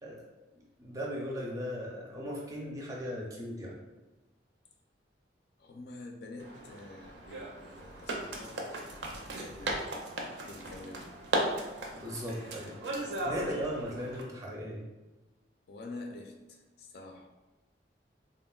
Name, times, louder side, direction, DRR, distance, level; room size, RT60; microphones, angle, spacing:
voice 1, 0.5-3.8 11.9-12.8 13.2-14.8, equal, 20° right, -2 dB, 0.4 m, -38 dB
voice 2, 5.6-8.7 9.1-9.9 10.4-11.1 15.7-17.3, left 2 dB, 60° left, 2 dB, 0.3 m, -47 dB
sound 1, 6.4-14.2, right 1 dB, 80° right, 0.4 m, -37 dB
3.5 x 2.0 x 2.2 m, 1.1 s
head